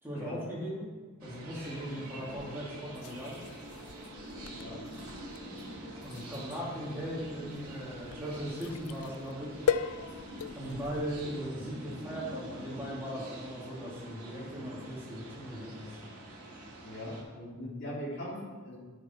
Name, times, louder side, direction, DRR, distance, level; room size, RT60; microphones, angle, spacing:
voice 1, 0.0-0.9 1.2-3.4 6.0-9.6 10.5-15.9, equal, 10° right, -6 dB, 2.5 m, -38 dB
sound 1, 1.2-17.2, right 1 dB, 90° right, 2.4 m, -46 dB
sound 2, 1.6-11.4, left 7 dB, 85° left, 0.4 m, -40 dB
voice 2, 16.8-18.8, left 1 dB, 50° left, -8 dB, 2.8 m, -40 dB
11.5 x 6.4 x 4.4 m, 1.4 s
head